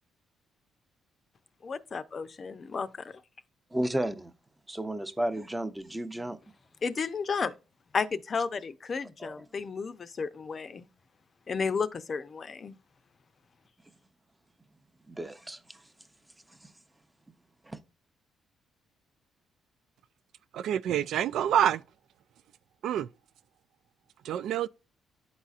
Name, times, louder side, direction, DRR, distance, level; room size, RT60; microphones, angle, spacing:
voice 1, 1.6-3.2 6.8-7.5 7.9-10.9 11.5-12.8, left 5 dB, 40° left, 0.6 m, -33 dB
voice 2, 3.7-4.3 4.7-6.4 9.2-9.3 15.1-15.9 16.5-16.7 17.6-17.8, right 1 dB, 10° right, 0.7 m, -33 dB
voice 3, 20.5-21.8 22.8-23.1 24.2-24.7, right 10 dB, 75° right, 0.3 m, -27 dB
11.5 x 4.0 x 2.4 m
cardioid pair, 90°, 0 cm